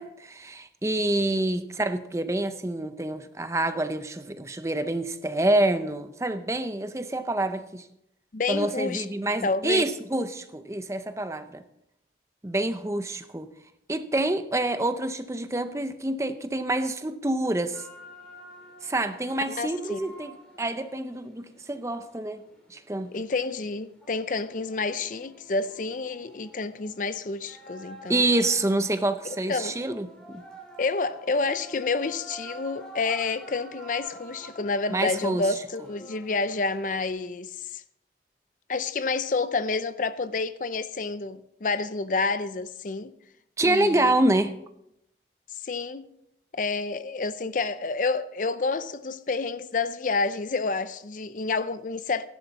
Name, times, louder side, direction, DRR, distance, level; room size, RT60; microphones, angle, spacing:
voice 1, 0.0-7.8 8.5-11.6 12.4-13.5 13.9-17.8 18.8-20.3 20.6-22.4 22.7-23.1 28.1-30.4 34.9-35.4 43.6-44.5, right 1 dB, 15° right, 0.6 m, -27 dB
voice 2, 8.3-9.1 9.4-9.9 19.5-20.1 23.1-28.2 29.3-29.8 30.8-37.8 38.7-43.1 43.6-44.1 45.5-46.1 46.5-52.3, left 3 dB, 45° left, 0.5 m, -29 dB
sound 1, 17.7-37.1, equal, 5° left, 3.0 m, -48 dB
15.0 x 11.0 x 4.1 m
head